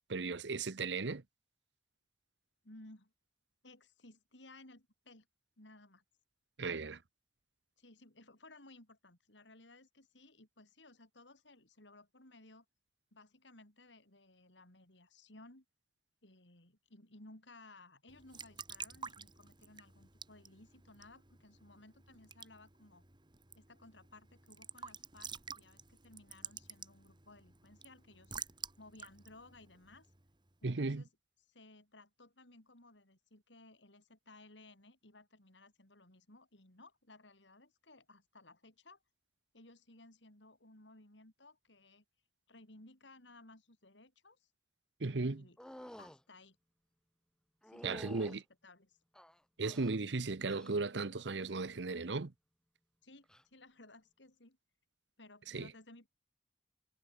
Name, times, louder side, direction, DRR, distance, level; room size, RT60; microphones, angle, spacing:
voice 1, 0.1-1.2 6.6-7.0 30.6-31.0 45.0-45.4 47.8-48.4 49.6-52.3 55.5-55.7, right 3 dB, 70° right, 0.9 m, -36 dB
voice 2, 2.6-3.1 3.6-5.3 5.6-6.0 7.8-12.7 13.1-15.6 16.2-23.0 23.5-28.3 28.8-30.1 30.6-31.1 31.5-39.0 39.5-42.0 42.5-44.5 45.2-45.6 46.0-46.6 47.6-49.0 53.0-54.6 55.2-56.1, left 2 dB, 85° left, 5.5 m, -59 dB
Raindrop / Drip / Trickle dribble, 18.1-30.6, right 6 dB, 25° right, 2.0 m, -51 dB
sound 1, 45.6-46.2 47.6-48.4 49.1-50.0 50.5-50.9 51.2-51.7 53.2-53.4, equal, 5° left, 0.8 m, -51 dB
head